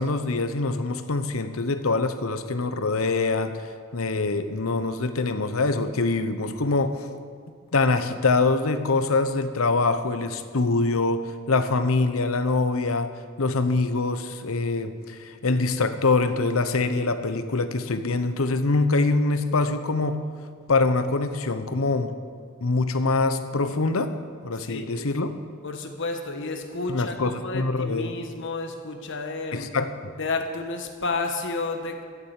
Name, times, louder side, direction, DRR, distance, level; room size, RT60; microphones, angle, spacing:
voice 1, 0.0-3.5 3.9-7.0 7.7-11.2 11.5-13.1 13.4-20.2 20.7-22.1 22.6-24.1 24.4-25.3 26.9-28.1 29.5-29.9, left 3 dB, 90° left, 10 dB, 0.9 m, -24 dB
voice 2, 24.5-24.9 25.6-29.7 30.2-32.0, left 3 dB, 60° left, 5 dB, 1.4 m, -31 dB
14.5 x 7.4 x 8.2 m, 2.1 s
head